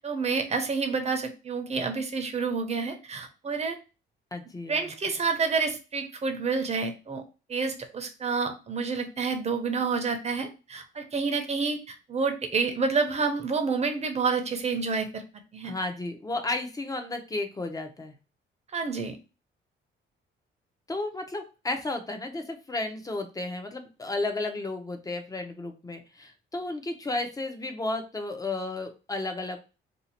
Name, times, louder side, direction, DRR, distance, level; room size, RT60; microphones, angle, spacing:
voice 1, 0.0-3.8 4.7-7.2 7.5-15.2 15.5-15.7 18.7-19.2, right 4 dB, 35° right, 5 dB, 0.8 m, -29 dB
voice 2, 4.3-5.2 15.6-18.1 20.9-29.6, left 2 dB, 20° left, 5 dB, 0.8 m, -33 dB
2.7 x 2.4 x 4.2 m, 0.31 s
cardioid pair, 90°, 20 cm